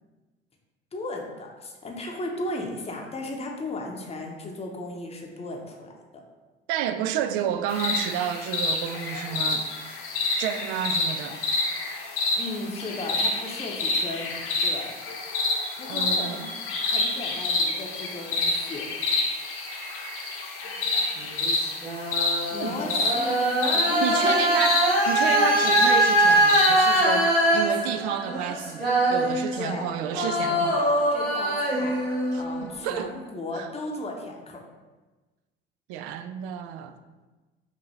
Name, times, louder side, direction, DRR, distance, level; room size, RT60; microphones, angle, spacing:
voice 1, 0.9-5.9 12.4-14.3 14.6-14.9 15.8-16.4 16.8-18.8 22.5-24.5 29.6-31.9 32.3-34.6, left 2 dB, 20° left, 0 dB, 0.8 m, -35 dB
voice 2, 6.7-9.9 10.4-11.4 15.9-16.4 22.4-22.9 24.0-30.8 32.3-33.1 33.5-33.7 35.9-37.0, right 9 dB, 60° right, 9 dB, 0.4 m, -30 dB
sound 1, 7.7-27.0, left 2 dB, 45° left, 0.9 m, -28 dB
sound 2, 21.2-29.8 30.1-32.7, right 1 dB, 75° right, 1.2 m, -23 dB
5.2 x 2.7 x 3.1 m, 1.2 s
figure-of-eight pair, 55°, 30 cm